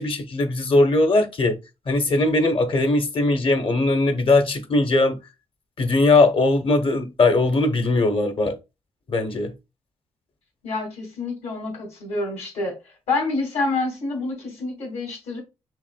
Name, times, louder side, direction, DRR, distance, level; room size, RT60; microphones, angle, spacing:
voice 1, 0.0-1.6 1.9-5.2 5.8-8.6 9.1-9.5, left 2 dB, 50° left, 0.9 m, -20 dB
voice 2, 10.6-12.7 13.1-15.4, left 3 dB, 85° left, 2.2 m, -27 dB
5.7 x 2.7 x 2.3 m
cardioid pair, 70°, 11 cm